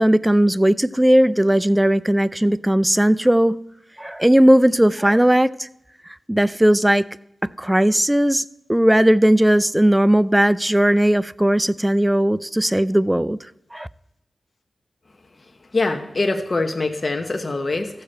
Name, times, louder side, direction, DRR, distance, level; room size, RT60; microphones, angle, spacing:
voice 1, 0.0-3.6 4.0-5.7 6.3-7.1 7.6-8.4 8.7-13.4 13.7-13.9, right 1 dB, 10° right, 0.4 m, -17 dB
voice 2, 15.7-18.0, left 2 dB, 45° left, 1.0 m, -23 dB
14.5 x 6.8 x 4.4 m
cardioid pair, 50°, 0 cm